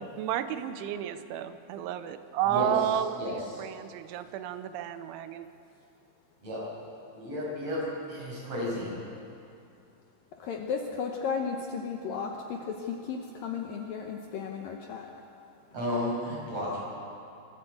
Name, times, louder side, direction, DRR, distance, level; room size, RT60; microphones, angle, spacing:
voice 1, 0.2-5.5, right 10 dB, 90° right, 11 dB, 3.2 m, -32 dB
voice 2, 3.2-3.7 6.4-6.6 7.1-8.9 15.7-16.8, left 1 dB, 30° right, -5 dB, 7.0 m, -33 dB
voice 3, 10.3-15.1, left 6 dB, 80° left, 2 dB, 2.0 m, -34 dB
25.0 x 13.0 x 8.1 m, 2.6 s
omnidirectional pair, 5.4 m